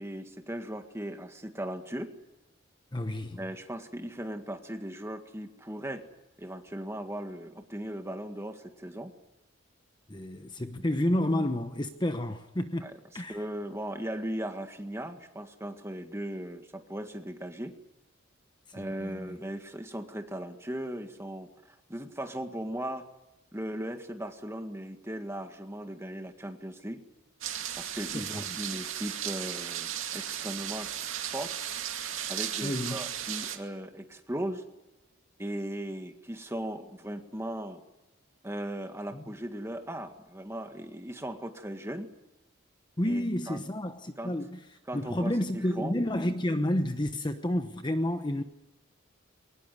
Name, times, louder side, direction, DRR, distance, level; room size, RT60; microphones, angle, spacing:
voice 1, 0.0-2.1 3.4-6.1 6.4-9.1 12.8-17.8 18.7-23.1 23.5-27.0 27.8-30.9 31.2-31.6 32.3-34.6 35.4-37.8 38.4-42.1 43.0-43.6 44.2-44.3 44.9-46.0, right 1 dB, 15° right, 1.9 m, -38 dB
voice 2, 2.9-3.4 10.1-12.9 13.1-13.4 18.8-19.4 28.1-28.4 32.6-33.1 39.1-39.2 43.0-44.6 44.9-48.4, left 1 dB, 20° left, 1.0 m, -30 dB
sound 1, 27.4-33.6, right 10 dB, 80° right, 2.4 m, -35 dB
22.5 x 19.5 x 9.5 m
head